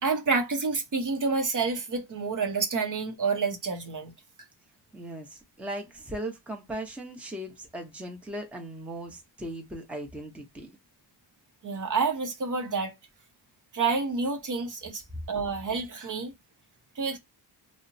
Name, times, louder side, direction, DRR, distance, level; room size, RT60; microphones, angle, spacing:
voice 1, 0.0-4.1 11.6-12.9 13.7-16.3 17.0-17.2, right 4 dB, 45° right, 0.7 m, -28 dB
voice 2, 4.9-10.7, right 1 dB, 5° right, 0.6 m, -38 dB
2.8 x 2.0 x 2.6 m
wide cardioid pair, 120°, 43 cm